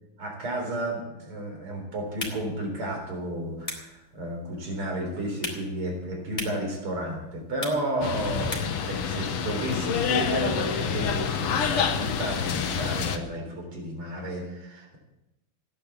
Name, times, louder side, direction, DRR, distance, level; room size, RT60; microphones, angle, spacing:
voice 1, 0.2-15.0, right 1 dB, 80° right, 1 dB, 4.7 m, -32 dB
sound 1, 2.0-8.9, left 1 dB, 20° left, 3.1 m, -41 dB
sound 2, 8.0-13.2, left 7 dB, 85° left, 2.1 m, -27 dB
16.0 x 10.5 x 7.2 m, 0.90 s
omnidirectional pair, 2.4 m